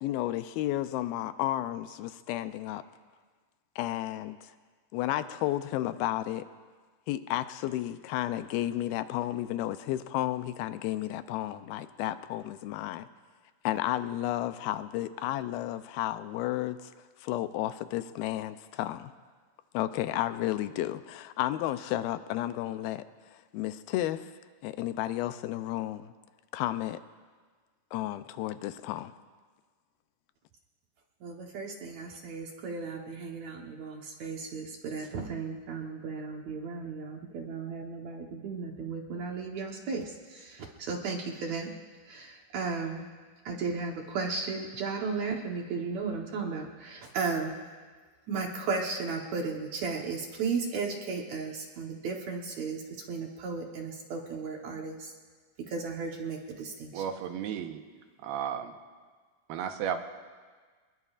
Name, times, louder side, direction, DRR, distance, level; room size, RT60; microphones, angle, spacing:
voice 1, 0.0-2.8 3.8-4.5 4.9-6.4 7.1-13.1 13.6-16.9 17.2-19.1 19.7-23.0 23.3-24.3 24.6-26.1 26.5-27.0 27.9-29.1, left 14 dB, 85° left, 11 dB, 2.4 m, -32 dB
voice 2, 31.2-41.7 42.0-43.0 43.5-47.6 48.3-55.1 55.6-57.0, right 4 dB, 65° right, 1 dB, 1.9 m, -35 dB
voice 3, 56.9-57.8 58.2-58.7 59.5-60.0, right 8 dB, 85° right, 5 dB, 2.9 m, -33 dB
26.5 x 20.5 x 2.5 m, 1.5 s
omnidirectional pair, 4.4 m